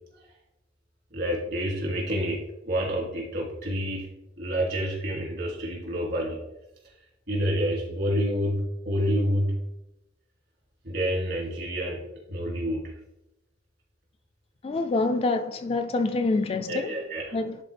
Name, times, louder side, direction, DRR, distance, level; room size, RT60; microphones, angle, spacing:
voice 1, 1.1-4.1 4.4-6.4 7.3-9.6 10.8-12.0 12.3-12.8 16.7-17.2, equal, 60° right, 2.4 m, -28 dB
voice 2, 14.6-16.9 17.3-17.6, left 3 dB, 30° left, 0.3 m, -26 dB
11.0 x 3.9 x 3.3 m
head